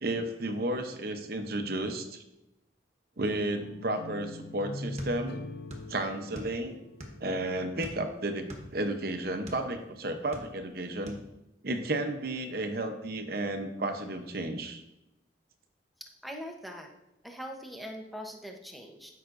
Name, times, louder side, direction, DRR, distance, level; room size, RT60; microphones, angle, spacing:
voice 1, 0.0-2.2 3.2-5.4 5.9-6.8 7.2-11.2 11.6-14.8, right 1 dB, 55° right, 7 dB, 0.8 m, -33 dB
sound 1, 3.3-8.4, left 2 dB, 55° left, 0.6 m, -43 dB
sound 2, 5.0-5.9 6.2-7.3 7.8-9.7 10.1-10.8 11.1-11.3, equal, 35° right, 1.1 m, -43 dB
voice 2, 16.2-16.9 17.2-19.1, equal, ahead, 1 dB, 0.8 m, -42 dB
12.5 x 5.7 x 2.6 m, 0.90 s
head